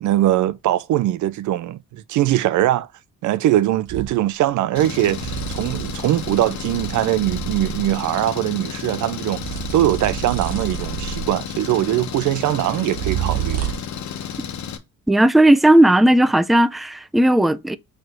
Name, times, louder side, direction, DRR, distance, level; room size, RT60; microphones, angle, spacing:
voice 1, 0.0-2.9 3.2-9.4 9.7-13.6, right 13 dB, 75° right, 0.5 m, -21 dB
sound 1, 3.9-4.2 5.1-8.1 9.3-11.6 12.9-14.0, right 11 dB, 55° right, 1.0 m, -29 dB
Engine, 4.8-14.8, left 8 dB, 70° left, 1.3 m, -32 dB
voice 2, 15.1-17.8, right 1 dB, ahead, 0.5 m, -15 dB
4.7 x 4.4 x 4.5 m
cardioid pair, 90°, 30 cm